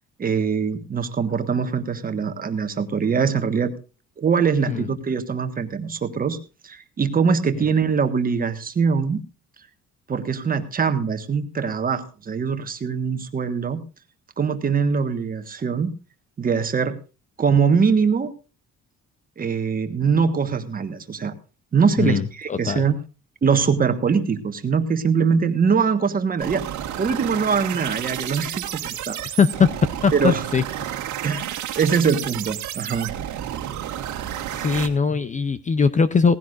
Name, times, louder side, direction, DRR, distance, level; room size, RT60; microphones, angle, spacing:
voice 1, 0.2-3.7 4.2-6.4 6.6-9.2 10.1-13.8 14.4-15.9 16.4-17.0 17.4-18.3 19.4-21.3 21.7-23.0 23.4-26.7 27.0-29.2 30.1-30.4 31.2-31.5 31.7-33.1, right 6 dB, 30° right, 8 dB, 1.4 m, -22 dB
voice 2, 22.0-22.9 29.4-29.7 30.0-31.0 34.5-36.3, left 5 dB, 25° left, 13 dB, 0.6 m, -21 dB
sound 1, 26.4-34.9, right 11 dB, 75° right, 1.9 m, -31 dB
18.0 x 16.0 x 2.6 m, 0.33 s
cardioid pair, 155°, 30 cm